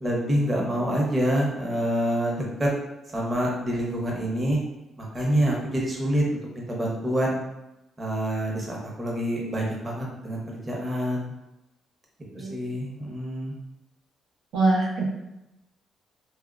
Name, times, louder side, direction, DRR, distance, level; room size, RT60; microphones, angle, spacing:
voice 1, 0.0-2.7 3.1-4.6 5.0-7.4 8.0-11.3 12.3-13.5, equal, 20° right, -3 dB, 0.8 m, -27 dB
voice 2, 12.3-12.8 14.5-15.0, right 3 dB, 85° right, -5 dB, 0.7 m, -24 dB
3.1 x 2.1 x 2.4 m, 0.93 s
cardioid pair, 90°, 0 cm